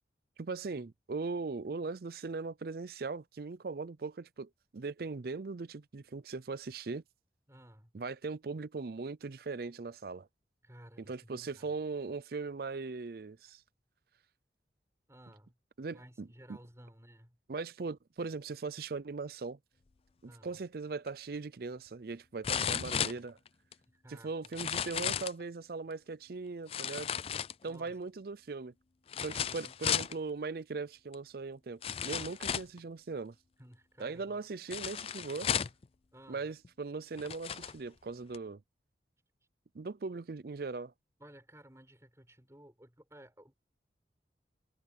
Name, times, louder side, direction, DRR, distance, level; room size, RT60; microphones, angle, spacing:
voice 1, 0.4-7.0 7.9-10.3 11.1-13.6 15.8-16.3 17.5-19.6 20.2-23.4 24.1-27.1 27.6-28.7 29.2-33.4 34.0-35.5 36.3-38.6 39.7-40.9, right 4 dB, 55° right, 0.5 m, -39 dB
voice 2, 7.5-7.9 10.6-11.8 15.1-15.5 15.9-17.4 20.2-20.6 23.9-24.6 27.6-28.0 29.6-30.0 33.6-34.4 36.1-36.5 41.2-43.6, right 1 dB, 15° right, 6.8 m, -56 dB
sound 1, 21.1-21.2 22.4-23.7 24.4-25.4 26.7-27.9 29.1-30.1 31.1-31.2 31.8-32.8 34.7-35.8 36.6-36.7 37.2-37.8 38.3-38.4, left 8 dB, 30° left, 0.4 m, -34 dB
head